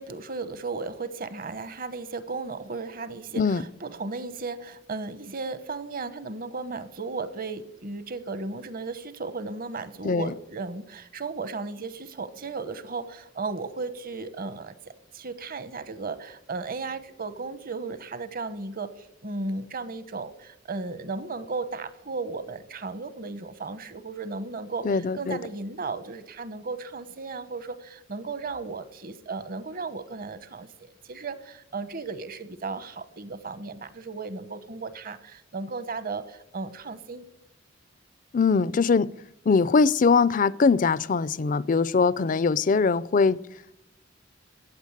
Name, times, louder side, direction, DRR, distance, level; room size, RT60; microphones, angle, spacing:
voice 1, 0.0-37.3, right 4 dB, 50° right, 1.1 m, -35 dB
voice 2, 24.8-25.4 38.3-39.1 39.5-43.4, left 4 dB, 45° left, 0.4 m, -22 dB
15.0 x 9.0 x 8.3 m
head